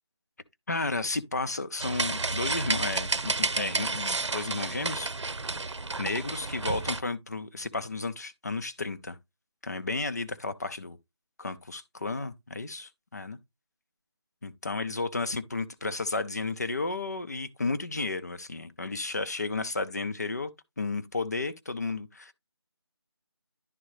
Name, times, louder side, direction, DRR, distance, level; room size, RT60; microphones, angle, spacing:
voice 1, 0.7-5.1 6.0-9.2 9.6-11.0 11.4-13.4 14.4-20.5 20.8-22.3, left 3 dB, 35° left, 0.6 m, -33 dB
sound 1, 1.8-7.0, right 3 dB, 80° right, 0.8 m, -31 dB
11.0 x 3.8 x 3.1 m
figure-of-eight pair, 175°, 15 cm